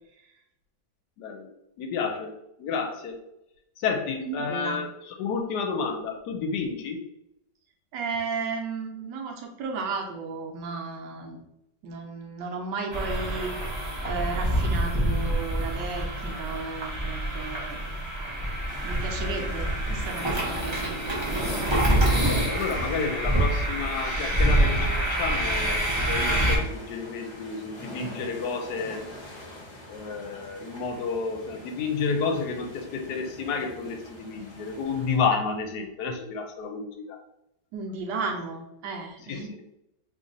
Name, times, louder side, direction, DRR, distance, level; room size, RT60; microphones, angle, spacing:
voice 1, 1.2-1.5 1.8-3.2 3.8-7.0 22.1-29.0 29.9-37.2 39.3-39.6, left 5 dB, 75° left, 5 dB, 1.1 m, -31 dB
voice 2, 4.2-4.8 7.9-11.4 11.8-13.5 14.1-17.8 18.8-21.4 37.7-39.5, right 4 dB, 75° right, 2 dB, 1.3 m, -34 dB
sound 1, 12.9-26.6, right 1 dB, 30° right, 0.5 m, -26 dB
sound 2, 18.7-35.2, left 1 dB, 45° left, 1.0 m, -43 dB
3.1 x 2.6 x 3.8 m, 0.84 s
omnidirectional pair, 2.0 m